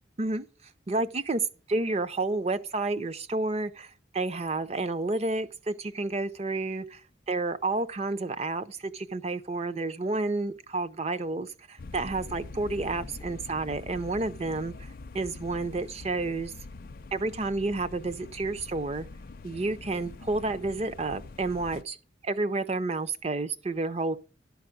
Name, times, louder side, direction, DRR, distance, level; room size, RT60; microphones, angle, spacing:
voice 1, 0.9-1.4 1.7-7.0 7.3-16.5 17.1-19.1 19.4-22.0 22.2-24.2, right 2 dB, 30° right, 0.6 m, -30 dB
sound 1, 11.8-21.8, left 3 dB, 45° left, 0.5 m, -44 dB
12.0 x 4.8 x 7.7 m
head